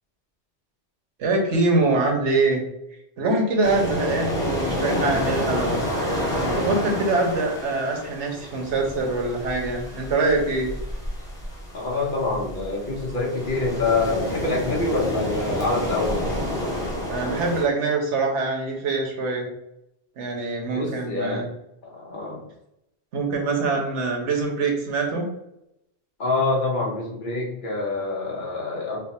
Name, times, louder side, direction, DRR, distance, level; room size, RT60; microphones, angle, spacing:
voice 1, 1.2-2.6 3.2-5.8 6.4-10.7 17.1-19.5 20.2-21.4 23.1-25.2, right 3 dB, 80° right, 1 dB, 1.2 m, -24 dB
sound 1, 3.6-17.6, left 1 dB, 5° left, 0.9 m, -29 dB
voice 2, 11.7-16.2 20.7-21.5 21.8-22.4 26.2-29.0, left 3 dB, 50° left, -2 dB, 1.0 m, -26 dB
3.3 x 2.1 x 4.1 m, 0.83 s
omnidirectional pair, 1.2 m